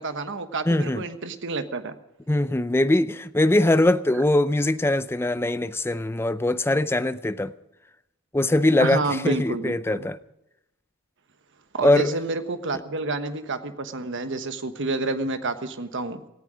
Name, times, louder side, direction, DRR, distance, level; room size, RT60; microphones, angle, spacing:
voice 1, 0.0-1.9 4.1-4.2 8.8-10.1 11.7-16.2, right 3 dB, 55° right, 1.2 m, -29 dB
voice 2, 0.7-1.0 2.3-7.5 8.3-10.2 11.8-12.1, left 1 dB, 10° left, 0.5 m, -22 dB
17.5 x 14.0 x 5.0 m
head